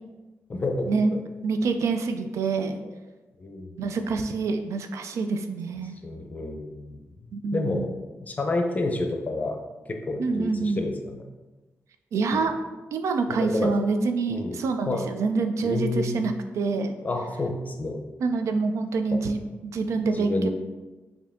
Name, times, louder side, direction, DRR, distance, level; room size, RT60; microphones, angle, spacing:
voice 1, 0.5-1.2 3.4-3.7 6.0-7.0 7.5-7.9 8.2-9.6 9.9-11.2 12.3-12.5 13.3-13.7 14.3-14.6 14.9-15.1 15.6-16.3 17.0-18.0 19.1-19.2 20.1-20.5, left 2 dB, 30° left, 4 dB, 0.5 m, -29 dB
voice 2, 1.4-2.8 3.8-5.9 7.3-7.9 10.2-10.8 12.1-12.5 12.9-17.0 18.2-20.5, right 4 dB, 85° right, 7 dB, 0.4 m, -26 dB
4.6 x 2.7 x 3.5 m, 1.2 s
wide cardioid pair, 110°, 5 cm